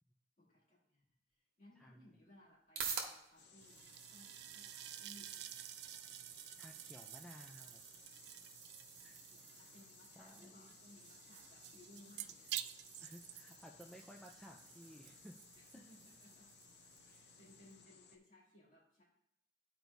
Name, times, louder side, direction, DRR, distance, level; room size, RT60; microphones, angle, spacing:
voice 1, 0.4-5.7 9.0-12.6 15.5-16.5 17.0-19.0, left 1 dB, 45° left, -6 dB, 2.5 m, -64 dB
sound 1, 1.3-18.2, right 5 dB, 50° right, 1.0 m, -53 dB
sound 2, 3.4-18.2, left 6 dB, 80° left, 0.7 m, -62 dB
sound 3, 3.6-17.8, right 12 dB, 75° right, 0.3 m, -52 dB
voice 2, 6.5-7.8 9.0-9.2 10.2-10.8 13.0-15.4 15.7-15.9 17.0-17.1, equal, 5° left, 0 dB, 0.3 m, -57 dB
12.0 x 4.6 x 2.6 m, 0.75 s
head